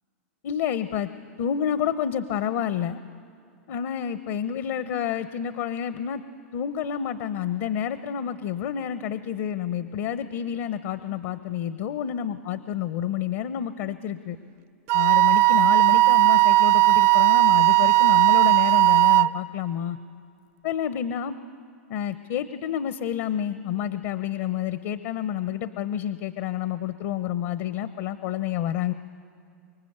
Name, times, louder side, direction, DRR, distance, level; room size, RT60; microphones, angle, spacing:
voice 1, 0.4-1.1 1.4-3.0 3.7-6.2 6.5-14.4 14.9-20.0 20.6-21.4 21.9-28.9, left 9 dB, 60° left, 12 dB, 1.0 m, -29 dB
Wind instrument woodwind instrument, 14.9-19.3, right 19 dB, 45° right, 0.5 m, -17 dB
25.5 x 22.5 x 8.1 m, 2.4 s
hypercardioid pair, 110°, 7 cm